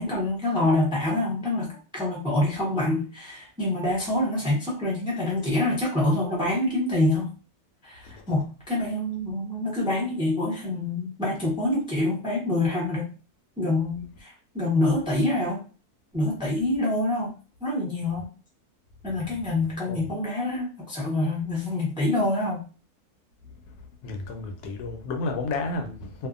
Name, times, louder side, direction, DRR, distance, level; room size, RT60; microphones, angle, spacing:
voice 1, 0.0-7.3 7.8-13.1 13.6-15.6 16.1-17.3 17.6-18.3 19.0-22.6, left 2 dB, 5° right, 0.5 m, -26 dB
voice 2, 24.0-26.3, left 3 dB, 90° left, 1.2 m, -31 dB
2.7 x 2.4 x 2.4 m
omnidirectional pair, 1.6 m